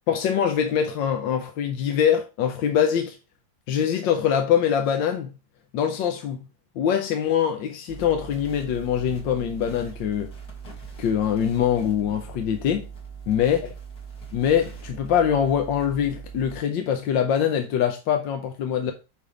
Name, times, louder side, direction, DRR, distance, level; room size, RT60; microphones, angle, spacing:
voice 1, 0.1-3.2 3.7-5.3 5.7-6.4 6.8-10.3 11.0-12.9 13.3-13.6 14.3-18.9, left 8 dB, 75° left, 1.4 m, -23 dB
sound 1, 7.9-16.6, right 6 dB, 55° left, 2.7 m, -40 dB
9.0 x 3.6 x 4.9 m
omnidirectional pair, 2.1 m